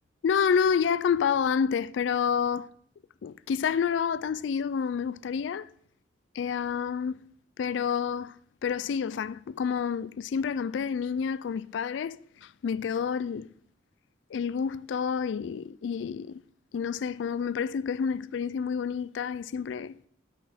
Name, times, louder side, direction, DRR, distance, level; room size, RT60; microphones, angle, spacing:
voice 1, 0.2-2.7 3.2-5.7 6.4-7.3 7.6-8.4 8.6-13.5 14.3-16.4 16.7-19.9, left 6 dB, 90° left, 0.3 m, -29 dB
9.8 x 6.1 x 5.0 m
head